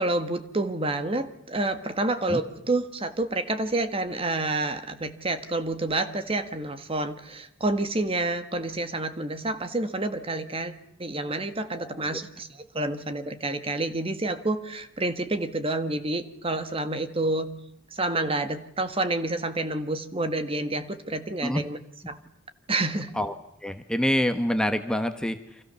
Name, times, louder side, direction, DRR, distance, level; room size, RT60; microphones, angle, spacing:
voice 1, 0.0-10.7 11.0-17.5 17.9-21.8 22.1-22.2 22.7-23.1, right 2 dB, 30° right, 10 dB, 1.6 m, -28 dB
voice 2, 11.8-12.2 21.4-21.6 23.1-23.3 23.6-25.4, left 1 dB, 5° left, 7 dB, 1.2 m, -26 dB
30.0 x 25.0 x 7.0 m, 0.76 s
head